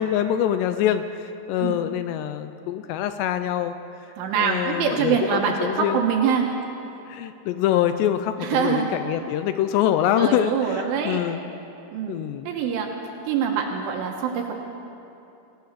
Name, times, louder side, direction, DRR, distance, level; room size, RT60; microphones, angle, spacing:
voice 1, 0.0-3.7 4.4-6.1 7.1-11.4 12.1-12.5, left 10 dB, 90° left, 10 dB, 2.4 m, -25 dB
voice 2, 4.2-6.5 8.4-8.9 10.2-11.2 11.9-12.2 12.5-12.9 13.3-14.5, right 7 dB, 75° right, 1 dB, 3.7 m, -24 dB
26.5 x 15.0 x 6.7 m, 2.8 s
omnidirectional pair, 5.7 m